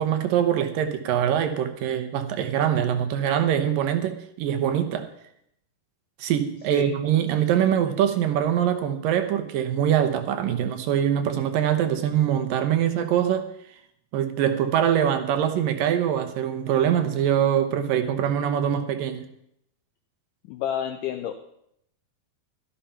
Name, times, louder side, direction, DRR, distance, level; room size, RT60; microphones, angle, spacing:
voice 1, 0.0-5.1 6.2-13.5 14.1-19.3, right 9 dB, 70° right, 9 dB, 2.6 m, -23 dB
voice 2, 20.5-21.3, left 10 dB, 75° left, 5 dB, 2.1 m, -29 dB
13.0 x 11.5 x 5.7 m, 0.73 s
omnidirectional pair, 4.3 m